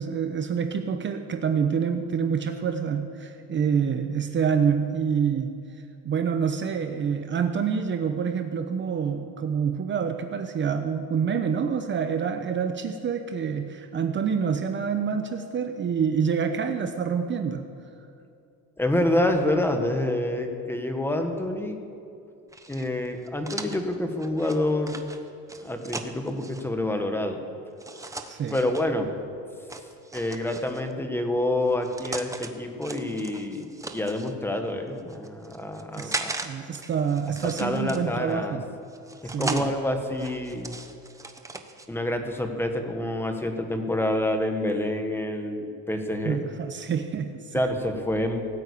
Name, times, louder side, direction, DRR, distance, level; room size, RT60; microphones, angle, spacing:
voice 1, 0.0-5.6 6.0-17.7 28.3-28.6 35.9-38.6 39.2-39.7 46.2-47.6, right 6 dB, 35° right, 7 dB, 0.9 m, -27 dB
voice 2, 18.8-21.8 22.7-25.0 25.6-27.4 28.5-29.1 30.1-36.4 37.4-38.6 39.2-40.8 41.9-46.4 47.5-48.4, left 1 dB, 5° left, 5 dB, 1.5 m, -27 dB
sound 1, 22.5-26.6 27.8-28.9 29.7-30.9 31.6-32.5 32.8-34.3 35.0-36.5 36.8-38.3 38.9-39.7 40.1-41.9, right 3 dB, 10° right, 1.0 m, -37 dB
18.0 x 9.1 x 8.5 m, 2.6 s
cardioid pair, 135°, 33 cm